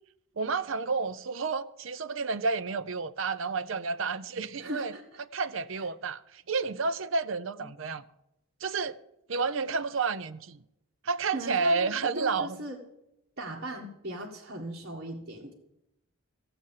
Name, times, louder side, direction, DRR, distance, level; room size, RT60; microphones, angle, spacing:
voice 1, 0.4-4.9 5.2-8.0 8.6-9.0 9.3-10.6 11.0-12.6, right 4 dB, 65° right, 0.6 m, -30 dB
voice 2, 4.6-5.0 11.3-11.9 12.2-12.8 13.4-15.5, right 1 dB, 50° right, 1.9 m, -38 dB
15.5 x 7.9 x 7.4 m
head